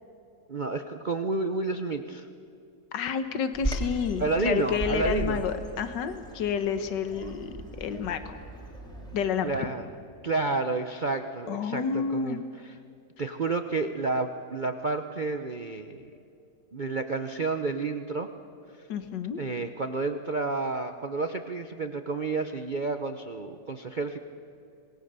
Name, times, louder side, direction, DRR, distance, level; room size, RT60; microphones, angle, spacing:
voice 1, 0.5-2.3 4.2-5.4 9.4-9.8 10.2-12.4 13.2-16.1 16.7-18.3 19.4-24.2, right 3 dB, 45° right, 7 dB, 0.6 m, -30 dB
voice 2, 2.9-8.4 9.1-9.7 11.5-12.4 18.9-19.4, left 6 dB, 75° left, 10 dB, 1.8 m, -30 dB
Bird vocalization bird call bird song, 3.5-9.2, right 1 dB, ahead, 3.1 m, -37 dB
26.5 x 20.5 x 6.8 m, 2.6 s
omnidirectional pair, 1.9 m